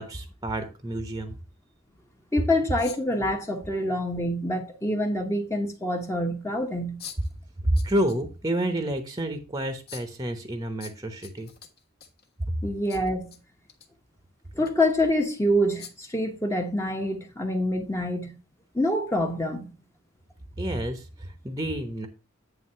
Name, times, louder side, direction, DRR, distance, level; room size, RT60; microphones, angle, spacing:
voice 1, 0.0-1.4 7.6-11.5 12.5-12.6 20.6-22.1, right 1 dB, 20° right, 0.9 m, -29 dB
voice 2, 2.3-7.0 12.6-13.3 14.5-18.4 18.7-19.7, left 1 dB, 15° left, 1.1 m, -26 dB
sound 1, 2.8-3.2 4.7-4.8 7.0-7.3 7.8-8.2 8.6-8.7 9.9-10.2 10.8-12.3 12.9-13.4 13.7-13.9 14.6-14.7 15.8-16.1, left 8 dB, 50° left, 1.6 m, -44 dB
9.4 x 3.5 x 5.6 m
head